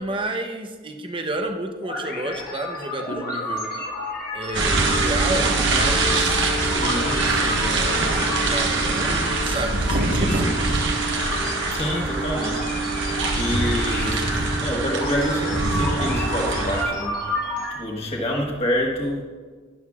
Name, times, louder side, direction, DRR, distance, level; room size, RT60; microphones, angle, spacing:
voice 1, 0.0-3.7 4.3-6.4 7.1-10.5, right 2 dB, 25° right, 4 dB, 0.8 m, -31 dB
sound 1, 1.8-17.8, left 2 dB, 50° left, 1.6 m, -32 dB
sound 2, 4.5-16.8, right 3 dB, 65° right, 1.4 m, -23 dB
voice 2, 6.8-7.2 11.7-12.8 13.4-17.2 17.7-19.2, left 1 dB, 30° left, -1 dB, 1.6 m, -27 dB
12.5 x 11.5 x 2.4 m, 1.5 s
head